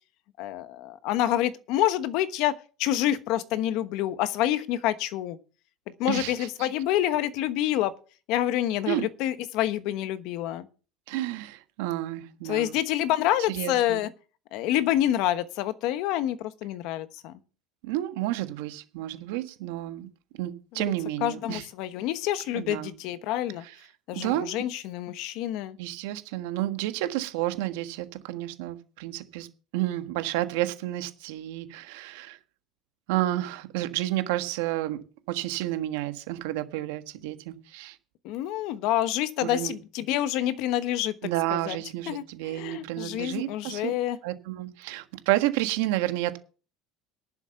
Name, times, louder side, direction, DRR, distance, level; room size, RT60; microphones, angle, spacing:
voice 1, 0.4-2.5 2.8-5.4 5.9-7.9 8.3-10.7 12.5-14.1 14.5-17.3 21.2-23.6 24.1-25.8 38.2-41.1 41.5-41.8 42.1-44.2, left 13 dB, 60° left, 1.1 m, -27 dB
voice 2, 6.0-6.7 8.9-9.1 11.1-12.8 13.5-14.0 17.8-20.1 20.4-21.6 22.5-22.9 23.6-23.7 24.1-24.5 25.8-29.5 29.7-32.4 33.1-35.0 35.3-38.0 39.4-39.7 41.2-43.8 44.2-46.4, right 15 dB, 85° right, 1.5 m, -30 dB
11.5 x 7.0 x 7.0 m
cardioid pair, 165°, 0 cm